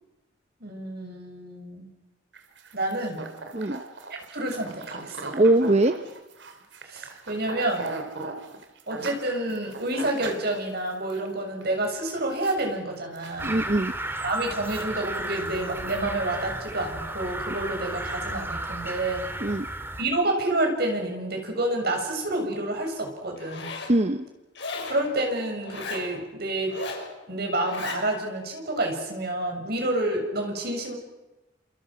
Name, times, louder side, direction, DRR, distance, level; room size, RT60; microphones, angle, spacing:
voice 1, 0.6-1.9 2.7-3.3 4.3-5.3 6.8-7.9 8.9-13.6 14.2-19.3 20.0-23.7 24.9-26.8 27.3-31.0, right 1 dB, 55° right, 2 dB, 7.3 m, -29 dB
sound 1, 2.3-11.3 11.6-11.9 12.1-12.7 13.0-13.9 14.3-16.0, right 3 dB, 70° right, 3.4 m, -39 dB
voice 2, 5.3-6.0 13.4-13.9 19.4-19.7 23.9-24.2, right 1 dB, 35° right, 10 dB, 0.9 m, -21 dB
sound 2, 13.4-20.0, right 1 dB, 10° right, 2.3 m, -33 dB
Zipper (clothing), 23.4-23.9 24.5-25.0 25.6-26.1 26.6-27.1 27.6-28.0, left 4 dB, 65° left, 6.2 m, -35 dB
28.5 x 28.0 x 6.3 m, 1.0 s
head